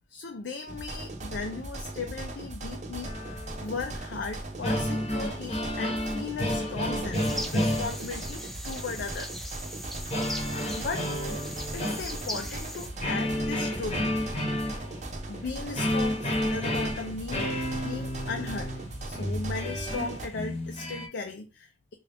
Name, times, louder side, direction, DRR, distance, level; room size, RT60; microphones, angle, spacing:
voice 1, 0.1-9.3 10.7-11.1 11.7-14.1 15.3-18.7 19.0-21.9, left 4 dB, 65° left, 0.5 m, -37 dB
sound 1, 0.7-20.3, right 2 dB, 40° right, 0.7 m, -38 dB
sound 2, 3.0-4.2 4.4-8.5 10.1-12.6 13.0-21.1, left 1 dB, 35° left, 0.9 m, -31 dB
sound 3, 7.1-12.9, equal, ahead, 0.4 m, -40 dB
3.8 x 2.4 x 3.3 m
head